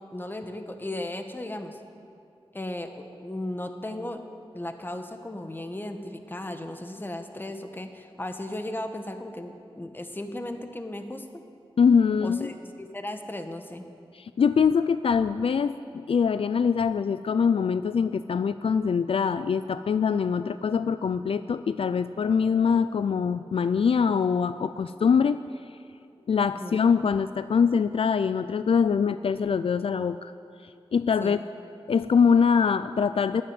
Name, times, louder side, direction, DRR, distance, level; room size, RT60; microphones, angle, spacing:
voice 1, 0.1-1.8 2.5-4.2 4.5-11.2 12.2-13.9 26.4-26.8 31.2-31.4, left 1 dB, 20° left, 7 dB, 1.2 m, -36 dB
voice 2, 11.8-12.5 14.1-25.4 26.3-30.3 30.6-31.4 31.9-33.4, left 6 dB, 70° left, 13 dB, 0.4 m, -23 dB
12.5 x 11.0 x 9.5 m, 2.5 s
wide cardioid pair, 95°, 10 cm